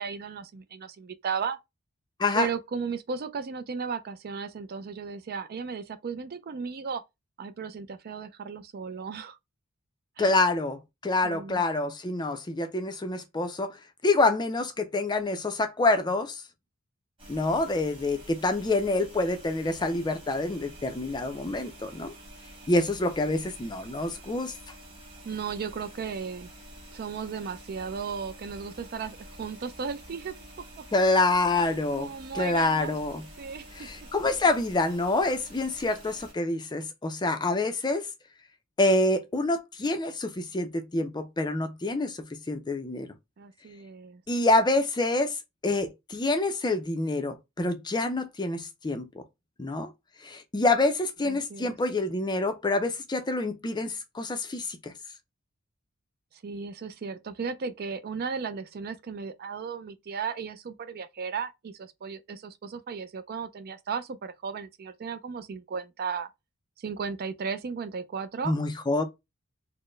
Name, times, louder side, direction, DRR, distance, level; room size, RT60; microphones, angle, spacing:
voice 1, 0.0-1.6 2.3-7.0 7.4-9.4 10.2-10.4 11.2-11.6 25.2-26.5 26.9-30.3 30.8-30.9 32.0-33.0 33.4-33.9 43.4-44.2 51.2-51.7 56.3-66.3 66.8-68.5, right 6 dB, 45° right, 0.4 m, -35 dB
voice 2, 10.2-13.8 14.0-16.4 17.3-22.1 22.7-24.5 30.9-32.1 32.3-33.2 33.8-38.1 38.8-42.2 42.5-43.1 44.3-45.4 45.6-49.2 49.6-49.9 50.2-54.9 68.4-69.0, left 2 dB, 20° left, 0.4 m, -27 dB
sound 1, 17.2-36.3, right 1 dB, 25° right, 1.6 m, -48 dB
4.2 x 2.1 x 3.1 m
head